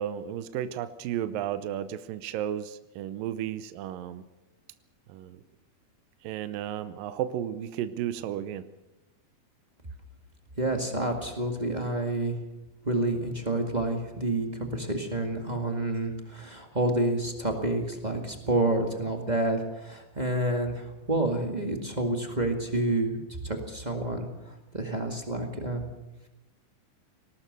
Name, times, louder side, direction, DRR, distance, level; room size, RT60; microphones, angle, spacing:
voice 1, 0.0-4.2 5.1-5.4 6.2-8.7, right 10 dB, 75° right, 12 dB, 2.3 m, -33 dB
voice 2, 10.6-12.4 12.8-23.2 23.4-25.9, right 2 dB, 25° right, 3 dB, 0.9 m, -29 dB
21.0 x 18.5 x 6.8 m, 1.0 s
omnidirectional pair, 4.4 m